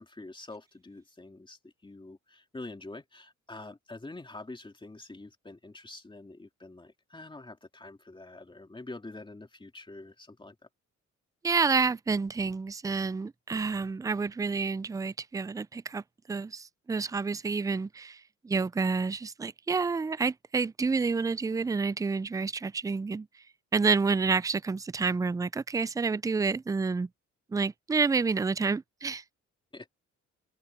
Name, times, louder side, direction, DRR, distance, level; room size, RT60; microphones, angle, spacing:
voice 1, 0.0-10.7 29.7-29.9, left 2 dB, 15° left, 2.8 m, -46 dB
voice 2, 11.4-16.0 16.3-23.3 23.7-27.1 27.5-29.2, right 4 dB, 10° right, 0.4 m, -29 dB
open air
cardioid pair, 90°, 30 cm